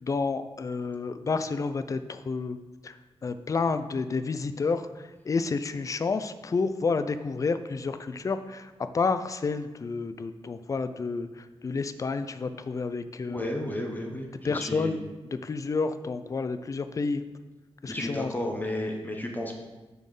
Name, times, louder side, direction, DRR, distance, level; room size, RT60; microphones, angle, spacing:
voice 1, 0.0-2.6 2.8-3.0 3.2-13.4 14.4-15.0 15.3-17.2 17.8-18.3, left 4 dB, 30° left, 10 dB, 0.4 m, -30 dB
voice 2, 13.3-14.9 17.9-19.6, left 1 dB, 15° left, 1 dB, 0.9 m, -33 dB
6.6 x 4.3 x 6.5 m, 1.2 s
wide cardioid pair, 160°, 11 cm